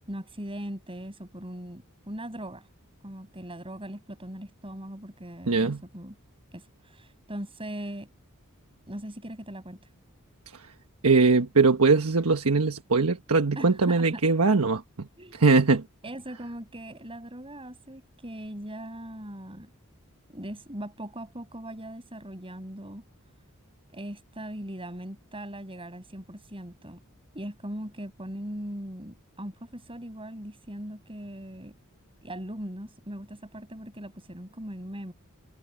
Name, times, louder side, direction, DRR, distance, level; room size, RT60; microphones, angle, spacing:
voice 1, 0.1-2.7 3.0-6.2 6.5-8.1 8.9-9.9 13.6-14.2 15.2-15.4 16.0-19.7 20.3-23.0 23.9-27.0 27.3-31.7 32.2-35.1, right 1 dB, 25° right, 7.5 m, -39 dB
voice 2, 5.5-5.8 10.5-10.7 11.0-15.1 15.3-15.8, right 3 dB, 75° right, 1.3 m, -21 dB
head